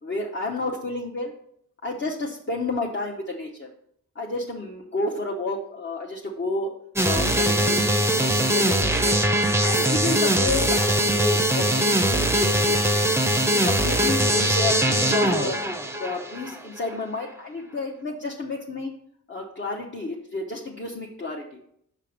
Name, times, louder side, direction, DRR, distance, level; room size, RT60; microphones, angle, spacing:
voice 1, 0.0-1.3 1.8-3.7 4.2-6.7 7.0-9.2 9.6-12.8 13.5-15.6 16.0-18.9 19.3-21.6, left 2 dB, 35° left, -1 dB, 0.7 m, -30 dB
sound 1, 7.0-16.6, right 1 dB, 10° right, 0.5 m, -21 dB
6.0 x 4.6 x 5.0 m, 0.70 s
wide cardioid pair, 85°, 34 cm